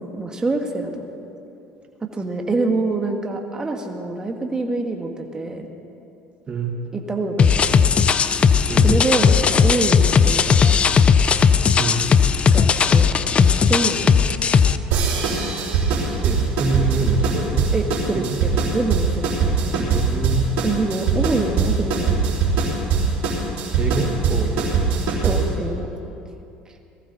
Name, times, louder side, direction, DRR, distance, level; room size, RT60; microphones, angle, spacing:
voice 1, 0.2-0.9 2.0-5.7 6.9-7.9 8.8-10.8 12.5-13.1 13.4-14.2 17.7-18.2 18.7-19.6 20.6-22.1 25.2-25.9, right 3 dB, 20° right, 3 dB, 1.5 m, -25 dB
voice 2, 6.5-6.8 8.7-8.9 11.8-12.1 13.1-13.4 16.2-17.7 18.1-18.4 19.7-20.5 23.8-24.7, right 3 dB, 35° right, 2 dB, 1.4 m, -26 dB
sound 1, 7.4-14.8, left 6 dB, 35° left, 0.5 m, -16 dB
sound 2, 14.9-25.6, right 5 dB, 65° right, 3.8 m, -21 dB
19.0 x 14.5 x 4.0 m, 2.8 s
supercardioid pair, 90°, 3 cm